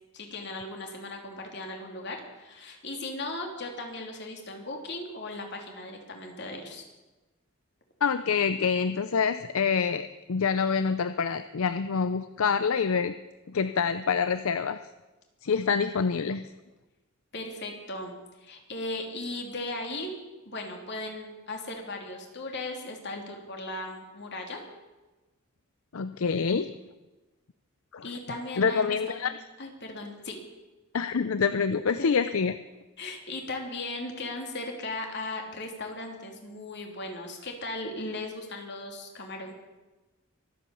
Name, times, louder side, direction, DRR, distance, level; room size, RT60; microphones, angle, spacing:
voice 1, 0.1-6.8 17.3-18.1 18.4-20.2 20.4-24.6 28.0-30.4 32.0-32.1 33.0-39.5, left 2 dB, 50° left, 2 dB, 3.0 m, -37 dB
voice 2, 8.0-13.1 13.5-14.8 15.4-16.4 25.9-26.7 27.9-28.0 28.6-29.3 30.9-32.5, left 5 dB, 70° left, 12 dB, 0.5 m, -26 dB
23.5 x 8.5 x 7.0 m, 1.1 s
head